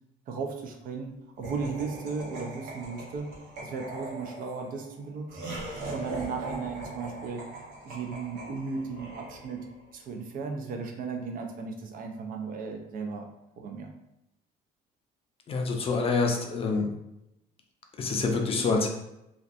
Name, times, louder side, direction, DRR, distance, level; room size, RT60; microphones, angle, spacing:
voice 1, 0.3-5.6 5.9-7.5 7.8-13.3 13.6-13.9, right 4 dB, 55° right, 4 dB, 0.4 m, -36 dB
Laughter, 1.4-9.8, right 2 dB, 80° right, 0.9 m, -40 dB
voice 2, 15.5-16.9 18.0-18.9, left 4 dB, 35° left, 2 dB, 0.4 m, -26 dB
2.5 x 2.2 x 2.4 m, 0.87 s
cardioid pair, 110°, 17 cm